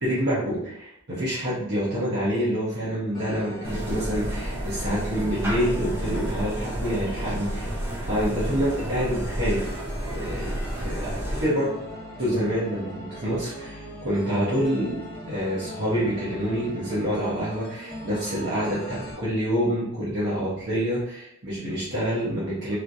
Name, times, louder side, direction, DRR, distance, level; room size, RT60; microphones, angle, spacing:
voice 1, 0.0-7.7 8.0-9.7 10.1-10.5 10.8-11.9 12.2-15.0 15.3-22.8, equal, 50° right, -10 dB, 1.1 m, -27 dB
sound 1, 3.1-19.1, equal, 40° left, 1.5 m, -40 dB
sound 2, 3.6-11.5, equal, 10° right, 0.6 m, -31 dB
3.1 x 2.9 x 2.6 m, 0.75 s
head